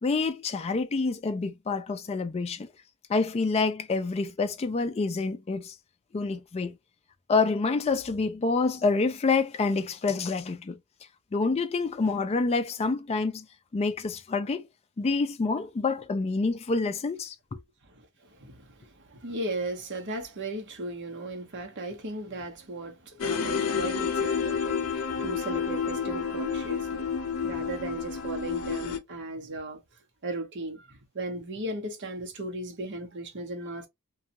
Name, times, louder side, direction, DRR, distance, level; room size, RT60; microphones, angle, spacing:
voice 1, 0.0-2.7 3.1-5.7 6.1-6.8 7.3-10.8 11.3-13.5 13.7-14.7 15.0-17.6, left 3 dB, 30° left, 0.3 m, -27 dB
voice 2, 17.8-27.1 27.4-29.8 30.2-33.9, right 2 dB, 55° right, 0.8 m, -36 dB
sound 1, 23.2-29.0, left 6 dB, 85° left, 0.6 m, -30 dB
2.6 x 2.3 x 2.8 m
head